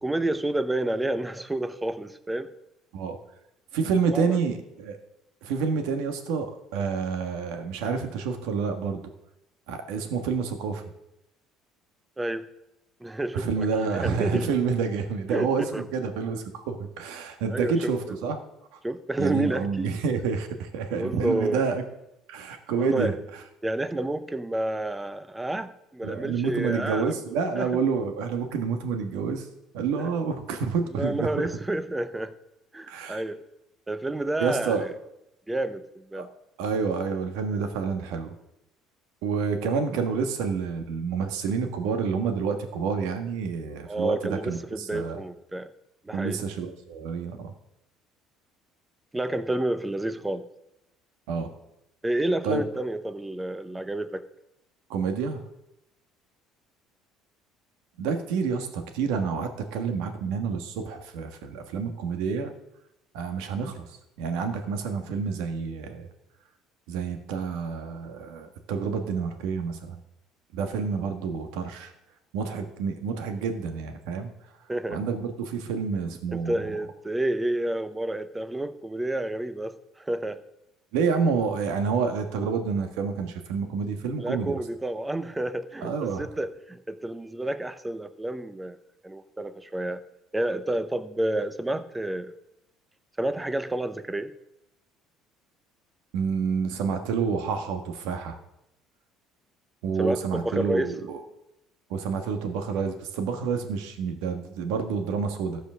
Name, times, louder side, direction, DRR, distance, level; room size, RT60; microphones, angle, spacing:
voice 1, 0.0-2.5 4.1-4.4 12.2-12.5 13.0-14.5 15.3-15.8 17.5-18.2 18.8-19.9 20.9-21.6 22.7-23.2 23.6-27.2 27.5-27.7 30.0-30.1 31.0-32.3 32.7-33.4 33.9-34.9 35.5-36.3 43.9-45.7 46.0-46.4 49.1-50.5 52.0-54.2 74.7-75.0 76.3-80.4 84.2-88.8 89.0-90.0 90.3-92.3 93.2-94.3 100.0-100.9, right 1 dB, 10° right, 12 dB, 0.6 m, -30 dB
voice 2, 3.7-5.0 5.4-9.1 9.7-10.8 13.3-18.4 18.7-18.8 19.2-21.8 22.3-23.1 26.0-29.5 29.7-31.5 32.9-33.2 34.4-34.9 36.1-36.3 36.6-38.3 39.2-45.2 46.1-47.5 51.3-51.5 52.4-52.6 54.9-55.4 58.0-62.5 63.1-63.9 64.2-66.1 66.9-70.0 70.5-71.9 72.3-74.3 74.9-76.6 80.9-84.6 85.8-86.3 96.1-98.4 99.8-101.2 101.9-105.6, right 5 dB, 90° right, 6 dB, 1.4 m, -28 dB
14.0 x 5.1 x 6.2 m, 0.88 s
cardioid pair, 140°, 0 cm